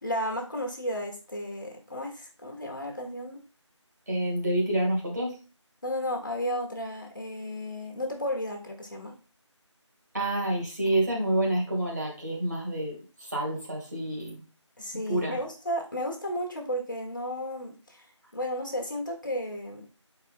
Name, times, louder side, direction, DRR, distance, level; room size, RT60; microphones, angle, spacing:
voice 1, 0.0-3.4 5.8-9.1 14.8-18.1 18.3-19.8, equal, 40° left, 1 dB, 1.5 m, -33 dB
voice 2, 4.1-5.3 10.1-14.4 15.1-15.4, right 1 dB, 35° right, -2 dB, 2.5 m, -28 dB
5.2 x 4.6 x 5.3 m, 0.33 s
figure-of-eight pair, 175°, 16 cm